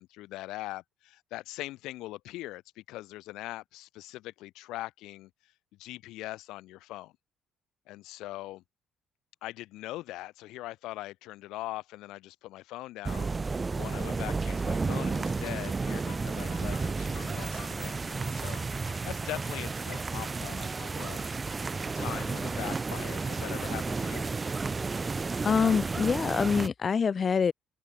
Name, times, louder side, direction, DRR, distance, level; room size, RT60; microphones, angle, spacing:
voice 1, 0.0-5.3 5.8-7.1 7.9-8.6 9.4-18.6 19.0-21.3 21.9-24.3, left 17 dB, 90° left, 3.5 m, -41 dB
sound 1, 13.0-26.7, right 4 dB, 15° right, 0.8 m, -32 dB
sound 2, 15.1-23.7, left 15 dB, 65° left, 6.1 m, -53 dB
voice 2, 25.4-27.5, left 6 dB, 25° left, 0.6 m, -25 dB
open air
cardioid pair, 175°, 0 cm